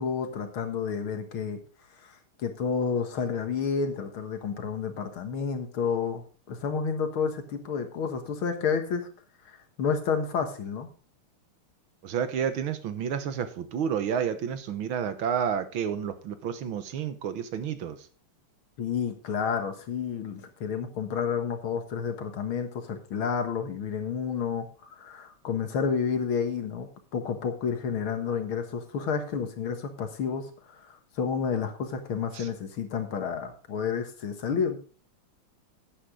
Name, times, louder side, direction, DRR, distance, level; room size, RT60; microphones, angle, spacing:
voice 1, 0.0-1.6 2.0-9.1 9.5-10.9 18.8-24.7 25.0-34.8, left 6 dB, 75° left, 7 dB, 2.3 m, -30 dB
voice 2, 12.0-18.1 32.3-32.5, right 8 dB, 70° right, 10 dB, 1.9 m, -30 dB
11.5 x 9.2 x 3.8 m, 0.39 s
omnidirectional pair, 2.3 m